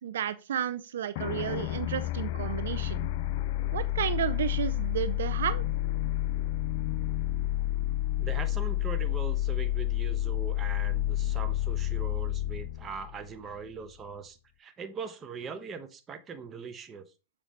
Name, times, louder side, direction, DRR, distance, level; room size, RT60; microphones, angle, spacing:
voice 1, 0.0-3.1 3.7-5.6, right 9 dB, 85° right, 0.5 m, -32 dB
sound 1, 1.2-13.9, left 14 dB, 60° left, 0.4 m, -30 dB
voice 2, 8.2-17.1, right 5 dB, 25° right, 0.9 m, -41 dB
7.3 x 5.0 x 3.2 m
hypercardioid pair, 125°, 0 cm